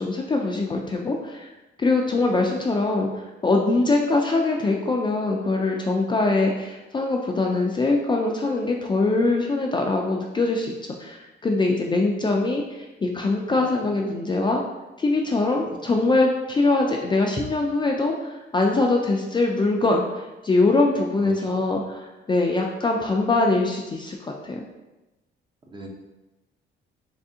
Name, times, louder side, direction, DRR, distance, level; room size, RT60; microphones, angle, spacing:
voice 1, 0.0-1.5 1.8-10.7 11.0-14.6 15.0-24.7, left 3 dB, 25° left, 0 dB, 0.4 m, -23 dB
voice 2, 15.6-16.0 21.2-21.6 25.7-25.9, right 1 dB, 25° right, 0 dB, 0.7 m, -41 dB
3.5 x 3.3 x 2.7 m, 1.0 s
cardioid pair, 90°, 20 cm